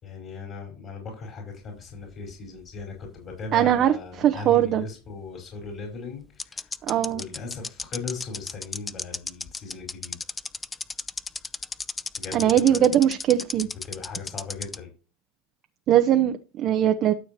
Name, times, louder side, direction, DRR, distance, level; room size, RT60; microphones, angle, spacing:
voice 1, 0.0-6.7 7.1-10.2 12.2-12.8 13.8-14.9, left 4 dB, 40° left, 5.1 m, -38 dB
sound 1, 1.9-3.5 3.7-3.8 5.6-5.7 6.4-14.8, left 4 dB, 15° left, 0.6 m, -33 dB
voice 2, 3.5-3.9 4.2-4.8 6.9-7.2 12.3-13.7 15.9-17.1, right 11 dB, 45° right, 1.0 m, -20 dB
12.5 x 7.1 x 3.0 m
hypercardioid pair, 90°, 0 cm